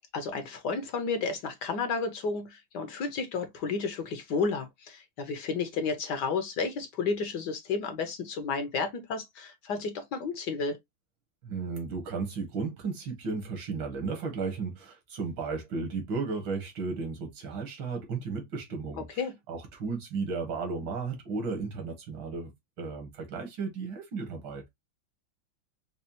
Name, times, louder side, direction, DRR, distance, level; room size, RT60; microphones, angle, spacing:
voice 1, 0.1-10.8 19.2-19.3, left 4 dB, 65° left, 1.2 m, -32 dB
voice 2, 11.4-19.1 19.5-22.5 22.8-24.7, right 4 dB, 70° right, 2.1 m, -34 dB
5.4 x 2.3 x 2.8 m
omnidirectional pair, 2.3 m